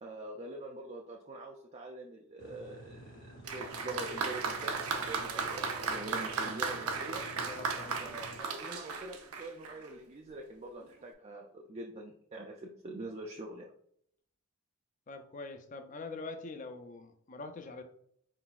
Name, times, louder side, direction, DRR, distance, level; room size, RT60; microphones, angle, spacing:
voice 1, 0.0-7.2 8.0-13.7, right 2 dB, 30° right, 0 dB, 0.3 m, -44 dB
sound 1, 2.4-8.4, right 1 dB, 55° left, 0.9 m, -51 dB
Applause, 3.4-9.9 10.8-10.9, right 4 dB, 80° right, 0.6 m, -36 dB
voice 2, 7.3-8.4 15.1-17.8, left 3 dB, 35° left, 7 dB, 0.4 m, -44 dB
4.4 x 3.9 x 2.3 m, 0.68 s
head